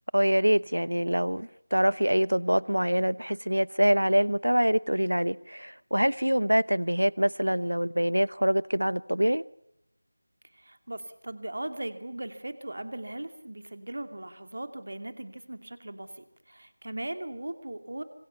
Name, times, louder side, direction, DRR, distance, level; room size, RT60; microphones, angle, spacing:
voice 1, 0.1-9.4, equal, 85° right, 0.9 m, -25 dB
voice 2, 10.5-18.0, right 1 dB, 55° right, 2.6 m, -38 dB
25.5 x 22.0 x 7.1 m
figure-of-eight pair, 170°, 0 cm